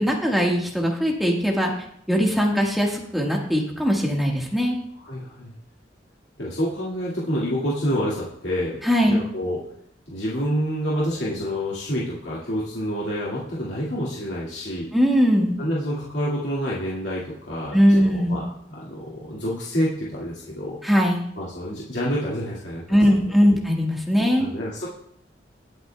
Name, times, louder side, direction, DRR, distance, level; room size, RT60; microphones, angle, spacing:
voice 1, 0.0-1.7 2.1-4.8 8.8-9.2 14.9-15.6 17.7-18.4 20.8-21.2 22.9-24.5, equal, ahead, -1 dB, 1.5 m, -20 dB
voice 2, 5.0-5.5 6.4-9.6 10.1-14.9 15.6-20.8 21.4-23.0 24.4-24.9, equal, 90° left, -7 dB, 2.1 m, -28 dB
19.5 x 8.0 x 2.3 m, 0.70 s
head